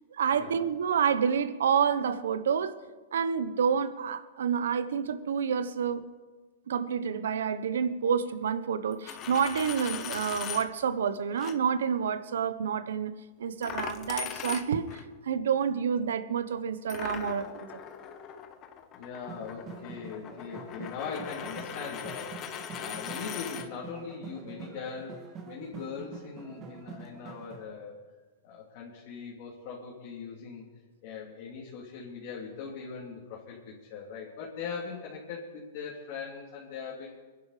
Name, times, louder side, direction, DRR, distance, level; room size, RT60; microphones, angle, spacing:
voice 1, 0.1-2.8 3.1-6.0 6.7-17.7, right 7 dB, 85° right, 13 dB, 1.0 m, -29 dB
Coin (dropping), 8.9-10.7 11.3-11.5 13.6-15.0 16.9-23.7, left 8 dB, 30° left, 1.2 m, -40 dB
voice 2, 18.9-28.1 28.4-30.6 31.0-37.1, left 6 dB, 50° left, -4 dB, 3.0 m, -40 dB
sound 1, 19.3-27.7, right 5 dB, 30° right, 2.3 m, -46 dB
23.0 x 10.5 x 5.0 m, 1.3 s
hypercardioid pair, 140°, 0 cm